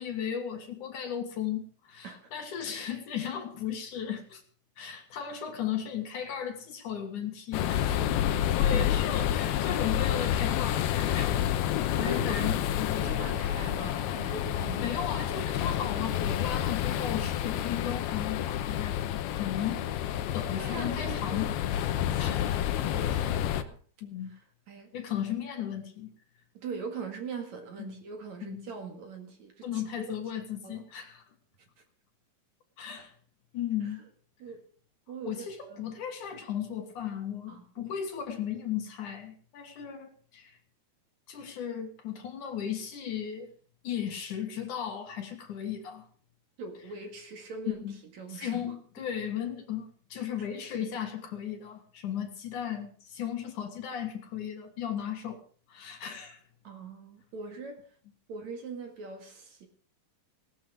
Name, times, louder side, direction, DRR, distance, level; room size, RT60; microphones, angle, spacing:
voice 1, 0.0-4.4 4.8-8.0 8.4-11.3 12.0-13.3 14.7-19.8 20.3-21.5 22.2-22.6 24.0-24.3 24.9-26.1 27.8-28.0 28.5-28.6 29.6-31.2 32.8-33.2 33.5-34.0 35.3-40.6 41.3-43.5 43.8-46.1 47.8-48.0 48.3-55.4 55.7-56.4, left 9 dB, 60° left, 2.8 m, -36 dB
sound 1, 7.5-23.6, left 11 dB, 85° left, 2.9 m, -29 dB
voice 2, 12.0-12.5 12.9-15.0 15.3-15.7 20.5-21.6 22.0-23.8 24.3-24.4 24.7-24.9 26.5-30.1 30.6-30.8 34.4-34.7 35.1-35.9 37.5-37.9 46.6-47.9 48.1-49.1 50.4-50.5 56.6-57.9 58.3-59.7, right 4 dB, 55° right, 3.0 m, -42 dB
18.0 x 12.5 x 5.0 m
omnidirectional pair, 4.4 m